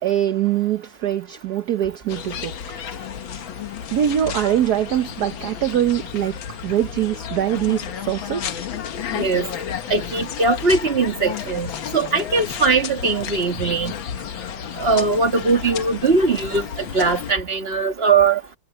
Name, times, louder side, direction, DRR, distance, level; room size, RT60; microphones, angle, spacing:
voice 1, 0.0-2.5 3.9-6.4 6.6-8.6, right 11 dB, 60° right, 1.3 m, -23 dB
sound 1, 2.1-17.3, left 8 dB, 80° left, 2.0 m, -32 dB
voice 2, 9.1-9.5 9.9-13.9 14.8-18.4, right 4 dB, 30° right, 2.1 m, -20 dB
omnidirectional pair, 2.1 m